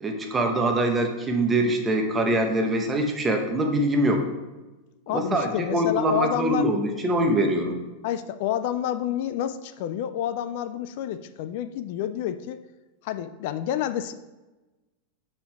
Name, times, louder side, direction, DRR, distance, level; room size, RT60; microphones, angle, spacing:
voice 1, 0.0-4.2 5.1-7.8, right 1 dB, 15° right, 3 dB, 0.9 m, -24 dB
voice 2, 5.1-6.7 8.0-12.6 13.0-14.1, left 11 dB, 60° left, 11 dB, 0.3 m, -29 dB
5.8 x 4.4 x 4.5 m, 1.1 s
supercardioid pair, 135°, 0 cm